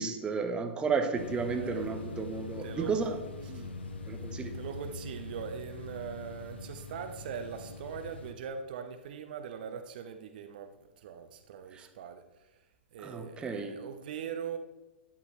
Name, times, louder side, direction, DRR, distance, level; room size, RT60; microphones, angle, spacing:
voice 1, 0.0-3.2 3.5-3.6 4.1-4.5 13.0-13.7, right 5 dB, 15° right, 6 dB, 1.1 m, -32 dB
sound 1, 1.1-8.3, left 3 dB, 70° left, 1.3 m, -42 dB
voice 2, 1.5-1.9 2.6-3.0 3.5-3.7 4.5-12.2 12.9-14.6, right 7 dB, 50° right, 8 dB, 1.0 m, -41 dB
12.5 x 10.0 x 3.2 m, 1.1 s
figure-of-eight pair, 105°, 6 cm